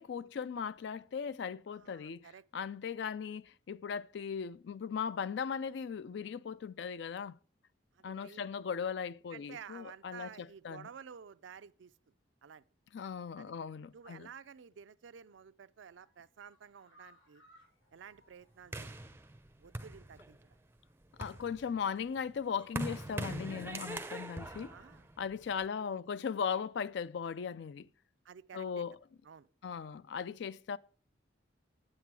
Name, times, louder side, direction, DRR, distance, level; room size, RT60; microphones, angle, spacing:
voice 1, 0.0-2.3 2.5-7.4 8.0-10.9 12.9-14.3 21.2-24.7 25.2-27.9 28.5-29.0 29.6-30.8, left 6 dB, 65° left, 0.3 m, -38 dB
voice 2, 1.7-2.4 7.9-8.5 9.3-12.1 12.4-12.6 13.4-13.5 13.9-17.4 17.9-19.1 19.6-20.6 24.5-25.1 25.6-26.0 28.2-28.8 29.2-29.5, right 7 dB, 75° right, 0.4 m, -52 dB
sound 1, 15.0-15.4 15.8-19.2 19.5-19.6 20.0-20.1, equal, 90° left, 4.0 m, -66 dB
sound 2, 18.7-20.5 21.0-25.6, right 2 dB, 10° right, 0.5 m, -42 dB
8.1 x 7.6 x 4.6 m
head